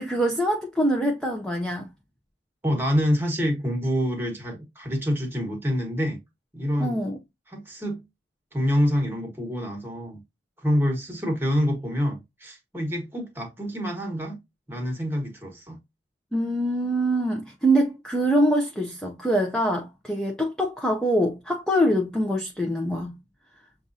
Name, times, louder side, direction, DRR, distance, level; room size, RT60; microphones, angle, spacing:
voice 1, 0.0-1.9 6.8-7.2 16.3-23.2, right 1 dB, 5° left, 0.5 m, -24 dB
voice 2, 2.6-6.2 6.5-7.0 7.5-8.0 8.5-10.2 10.6-14.4 14.7-15.8, equal, 10° right, 1.2 m, -26 dB
6.9 x 2.4 x 2.6 m
head